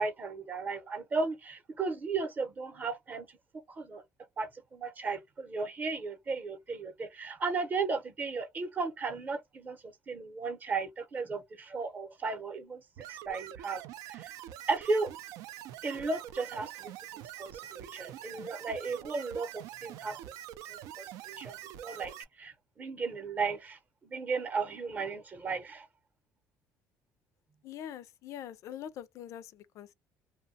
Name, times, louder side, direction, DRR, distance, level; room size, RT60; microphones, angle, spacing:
voice 1, 0.0-3.4 3.7-4.0 4.4-12.8 13.1-13.8 14.1-14.3 14.7-15.1 15.8-20.2 20.7-25.9, right 4 dB, 30° right, 0.7 m, -35 dB
sound 1, 13.0-22.2, right 12 dB, 85° right, 0.4 m, -45 dB
voice 2, 27.6-29.9, left 10 dB, 60° left, 0.4 m, -44 dB
2.7 x 2.1 x 2.6 m
cardioid pair, 120°, 6 cm